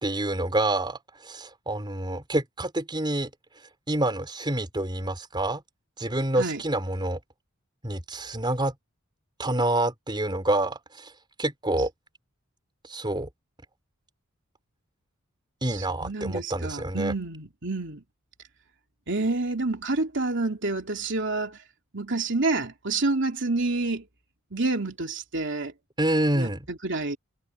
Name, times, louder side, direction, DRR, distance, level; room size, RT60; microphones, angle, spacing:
voice 1, 0.0-3.3 3.9-5.6 6.0-7.2 7.8-8.7 9.4-11.1 11.4-11.9 12.9-13.3 15.6-17.1 26.0-26.7, right 1 dB, 20° right, 3.7 m, -27 dB
voice 2, 15.7-18.0 19.1-21.6 21.9-24.0 24.5-25.7 26.3-27.2, right 3 dB, 60° right, 2.9 m, -28 dB
head